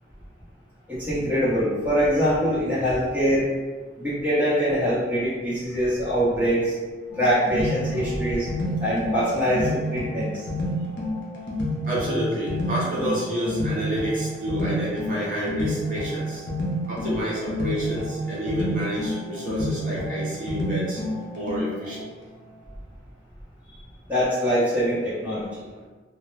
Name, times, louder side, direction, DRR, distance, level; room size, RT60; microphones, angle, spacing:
voice 1, 0.9-3.5 4.0-6.7 7.1-8.5 8.8-10.4 23.7-23.8 24.1-25.7, equal, 10° right, -11 dB, 0.8 m, -23 dB
sound 1, 7.1-22.0, left 1 dB, 70° left, 0.6 m, -29 dB
voice 2, 11.9-16.4 16.9-21.0 21.3-22.1, equal, 50° right, -8 dB, 0.6 m, -29 dB
2.1 x 2.1 x 3.2 m, 1.4 s
head